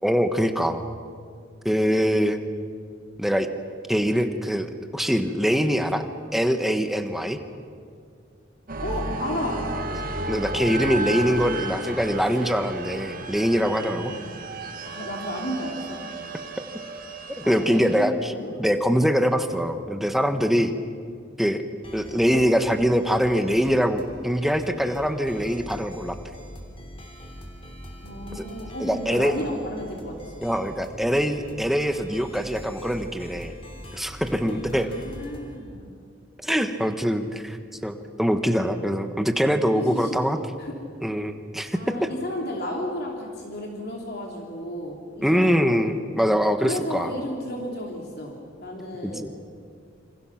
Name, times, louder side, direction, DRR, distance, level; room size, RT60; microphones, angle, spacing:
voice 1, 0.0-0.8 1.6-2.4 3.2-3.5 3.9-6.0 6.3-7.4 10.3-14.1 17.3-18.3 18.6-20.7 21.4-21.6 21.9-26.2 28.3-28.5 28.8-29.3 30.4-33.5 33.9-34.9 36.4-37.6 37.8-40.4 41.0-42.1 45.2-47.1 49.0-49.3, equal, ahead, 7 dB, 1.3 m, -23 dB
sound 1, 8.7-18.0, right 2 dB, 50° right, 1.8 m, -33 dB
voice 2, 8.8-9.6 14.1-14.2 14.8-16.5 17.4-18.8 27.9-30.5 34.7-35.9 38.4-39.1 39.7-40.2 40.6-40.7 41.7-45.9 46.6-49.3, equal, 55° left, -1 dB, 3.2 m, -33 dB
sound 2, 21.8-35.6, equal, 30° left, 3.3 m, -43 dB
28.0 x 26.5 x 5.9 m, 2.2 s
head